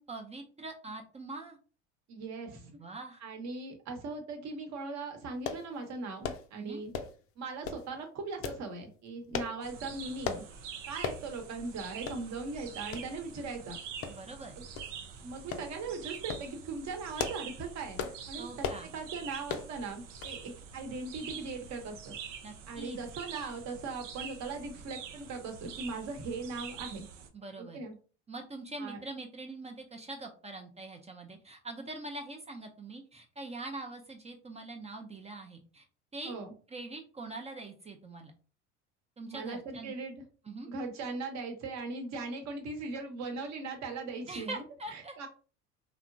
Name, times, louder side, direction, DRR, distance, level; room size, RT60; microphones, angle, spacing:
voice 1, 0.0-1.6 2.6-3.2 6.6-6.8 14.1-14.5 18.4-19.0 22.4-23.0 27.3-27.9 28.3-35.9 36.1-36.4 36.7-38.3 39.2-39.9 40.5-40.7 44.3-45.3, right 2 dB, 20° right, 3 dB, 0.4 m, -43 dB
voice 2, 2.1-2.7 3.2-6.9 7.4-10.4 10.9-13.8 14.6-14.7 15.2-18.7 18.9-22.1 22.7-27.1 27.6-28.0 28.8-29.0 36.2-36.5 39.3-40.2 40.7-44.6 44.9-45.3, right 3 dB, 50° right, 4 dB, 0.9 m, -39 dB
sound 1, 5.5-5.7 6.2-6.5 6.9-7.2 7.6-7.9 8.4-8.6 9.3-9.6 10.2-10.5 11.0-11.2 11.6-11.7 12.1-12.2 12.9-13.1 14.0-14.4 14.8-14.9 15.5-15.7 16.1-16.5 17.0-17.5 18.0-18.2 18.6-18.9 19.5-19.7 20.2-20.4 20.7-20.8, left 6 dB, 40° left, 0.5 m, -36 dB
sound 2, 9.6-27.3, right 7 dB, 85° right, 0.5 m, -46 dB
2.8 x 2.1 x 2.5 m, 0.38 s
hypercardioid pair, 75°, 36 cm